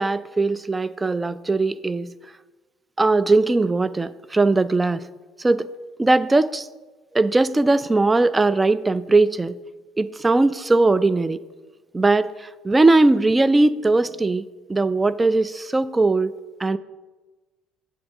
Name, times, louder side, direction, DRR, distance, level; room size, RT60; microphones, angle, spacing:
voice 1, 0.0-2.1 3.0-5.0 5.4-5.7 6.0-6.7 7.1-9.6 10.0-11.4 11.9-14.4 14.7-16.3 16.6-16.8, right 2 dB, 20° right, 16 dB, 0.3 m, -19 dB
8.4 x 4.0 x 6.4 m, 1.2 s
figure-of-eight pair, 60°, 0 cm